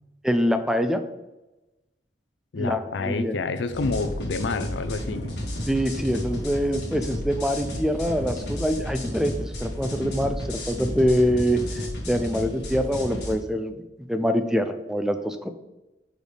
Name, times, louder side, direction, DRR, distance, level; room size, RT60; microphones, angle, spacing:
voice 1, 0.2-1.0 2.6-3.3 5.7-13.8 14.1-15.5, equal, 5° right, 8 dB, 0.3 m, -25 dB
voice 2, 2.5-5.4, left 4 dB, 80° left, 11 dB, 0.5 m, -28 dB
sound 1, 3.7-13.3, equal, 60° left, 1.8 m, -32 dB
6.5 x 5.0 x 3.3 m, 1.0 s
head